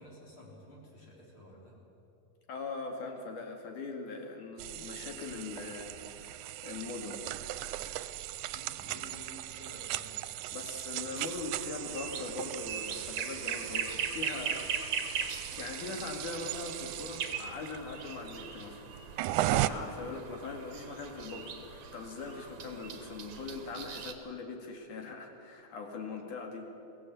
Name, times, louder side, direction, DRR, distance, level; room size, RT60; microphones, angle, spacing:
voice 1, 0.0-1.8 8.5-10.6 11.0-12.1, left 1 dB, 45° left, -3 dB, 4.8 m, -52 dB
voice 2, 2.5-7.2 10.5-15.0 15.6-18.8 19.4-26.7, left 4 dB, 85° left, 2 dB, 3.8 m, -41 dB
sound 1, 4.6-19.7, right 15 dB, 85° right, 2.1 m, -38 dB
sound 2, 11.2-24.1, right 6 dB, 60° right, 2.4 m, -40 dB
23.0 x 16.5 x 8.4 m, 2.8 s
omnidirectional pair, 3.5 m